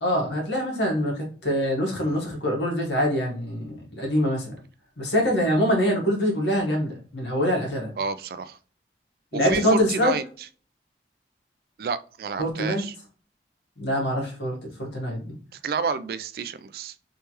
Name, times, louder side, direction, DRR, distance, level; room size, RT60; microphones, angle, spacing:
voice 1, 0.0-4.5 5.0-7.9 9.3-10.1 12.4-12.8 13.8-15.3, equal, 90° left, 1.6 m, -24 dB
voice 2, 8.0-8.6 9.3-10.2 11.8-13.0 15.6-16.9, right 5 dB, 55° right, 0.3 m, -29 dB
3.4 x 3.2 x 2.9 m
head